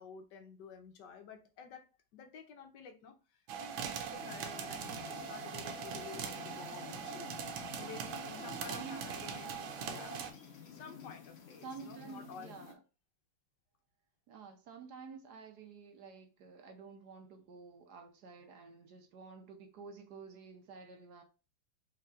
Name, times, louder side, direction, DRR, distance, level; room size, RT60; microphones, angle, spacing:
voice 1, 0.0-7.3 7.8-10.2 10.7-12.5 18.5-18.6, left 6 dB, 70° left, 1.3 m, -52 dB
sound 1, 3.5-10.3, right 7 dB, 85° right, 1.4 m, -41 dB
sound 2, 4.1-12.7, left 7 dB, 50° left, 0.8 m, -51 dB
voice 2, 8.7-9.3 11.6-12.8 14.3-21.2, right 5 dB, 65° right, 1.1 m, -50 dB
4.6 x 3.3 x 2.4 m
omnidirectional pair, 2.1 m